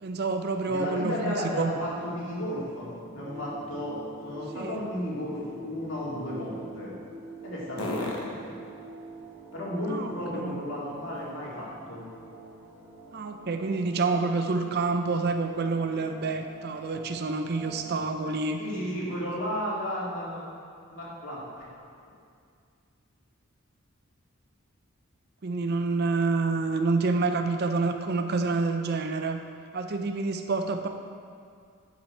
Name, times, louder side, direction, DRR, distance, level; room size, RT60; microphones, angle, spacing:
voice 1, 0.0-1.7 4.5-4.8 7.8-8.1 9.9-10.6 13.1-18.6 25.4-29.4 29.7-30.9, right 3 dB, 50° right, 6 dB, 0.5 m, -28 dB
voice 2, 0.6-4.0 4.2-6.9 7.4-8.6 9.5-12.0 18.6-20.4 20.9-21.6, equal, 65° left, -6 dB, 2.3 m, -33 dB
sound 1, 1.0-18.1, right 2 dB, 10° right, 1.1 m, -46 dB
sound 2, 8.6-11.9 12.3-16.1, left 1 dB, 80° left, 1.2 m, -46 dB
10.0 x 5.7 x 4.3 m, 2.3 s
head